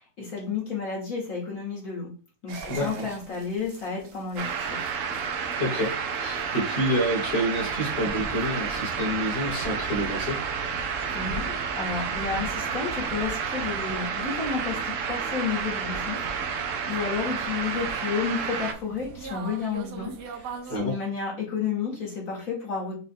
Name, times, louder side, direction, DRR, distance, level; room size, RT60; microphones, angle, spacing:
voice 1, 0.0-2.1 2.4-4.8 10.8-16.6 16.9-22.9, left 5 dB, 55° left, -5 dB, 1.7 m, -32 dB
sound 1, 2.5-20.8, right 3 dB, 85° right, 1.3 m, -43 dB
voice 2, 2.7-3.1 5.6-10.4 20.7-21.0, equal, 30° left, -2 dB, 1.4 m, -28 dB
sound 2, 4.4-18.7, right 6 dB, 65° right, 0.8 m, -30 dB
4.2 x 2.4 x 4.2 m, 0.38 s
omnidirectional pair, 1.8 m